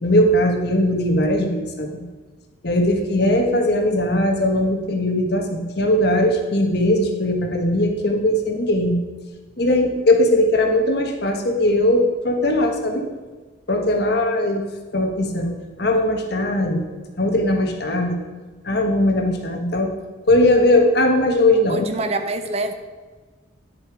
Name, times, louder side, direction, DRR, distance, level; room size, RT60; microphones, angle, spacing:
voice 1, 0.0-2.0 2.6-9.0 9.6-13.1 13.7-14.6 14.9-15.5 15.8-16.8 17.2-18.2 18.6-19.9 20.2-21.8, left 1 dB, 55° left, 4 dB, 1.3 m, -19 dB
voice 2, 21.7-22.7, right 2 dB, 35° right, 8 dB, 0.6 m, -25 dB
10.5 x 6.9 x 4.7 m, 1.3 s
head